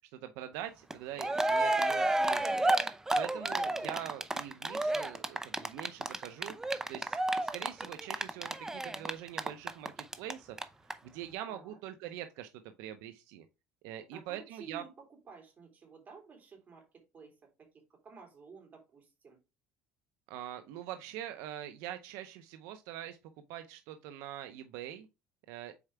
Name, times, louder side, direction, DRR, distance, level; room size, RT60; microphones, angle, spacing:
voice 1, 0.1-2.6 3.1-6.5 6.9-10.6 11.0-13.5 13.8-14.8 20.3-23.2 23.5-25.1 25.5-25.7, right 11 dB, 80° right, 0.6 m, -43 dB
Cheering, 0.9-1.0 1.2-10.3 10.6-10.7 10.9-11.0, right 2 dB, 10° right, 0.6 m, -30 dB
voice 2, 1.7-2.7 11.5-11.8 14.1-17.4 18.0-19.4, right 5 dB, 35° right, 3.4 m, -53 dB
7.1 x 4.5 x 3.4 m
cardioid pair, 120°, 5 cm